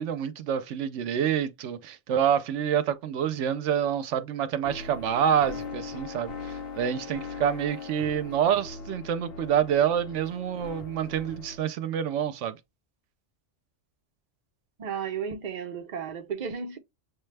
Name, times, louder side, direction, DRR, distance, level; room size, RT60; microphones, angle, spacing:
voice 1, 0.0-12.6, right 9 dB, 80° right, 0.9 m, -27 dB
sound 1, 4.6-11.6, left 4 dB, 55° left, 1.0 m, -40 dB
voice 2, 14.8-16.8, right 6 dB, 45° right, 0.6 m, -33 dB
6.2 x 2.3 x 3.2 m
omnidirectional pair, 1.2 m